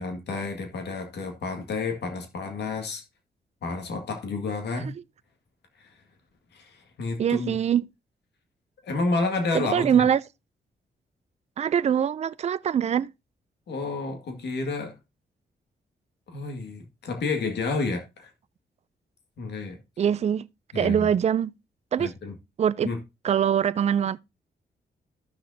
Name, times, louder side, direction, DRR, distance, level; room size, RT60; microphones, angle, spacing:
voice 1, 0.0-3.0 3.6-4.9 5.8-5.9 6.5-7.5 8.8-10.1 13.7-15.0 16.3-18.3 19.4-19.8 20.7-21.1 22.0-22.3 22.8-23.0, left 3 dB, 80° left, 2.0 m, -30 dB
voice 2, 7.2-7.8 9.5-10.2 11.6-13.1 20.0-20.5 20.8-21.5 21.9-22.1 22.6-22.9 23.2-24.2, right 8 dB, 40° right, 0.4 m, -23 dB
14.0 x 6.3 x 2.7 m
wide cardioid pair, 130°, 17 cm